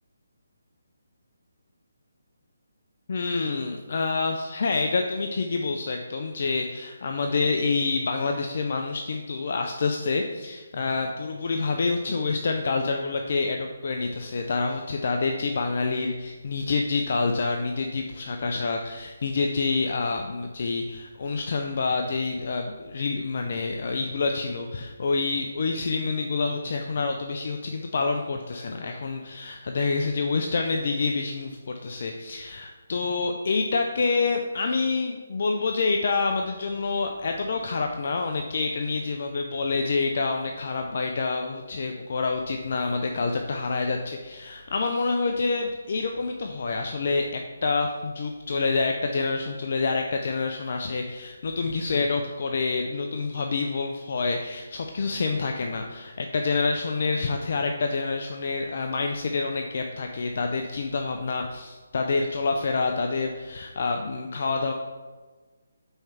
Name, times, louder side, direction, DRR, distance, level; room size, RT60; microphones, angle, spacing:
voice 1, 3.1-64.7, left 4 dB, 55° left, 3 dB, 0.6 m, -27 dB
5.6 x 4.5 x 5.7 m, 1.3 s
hypercardioid pair, 160°, 0 cm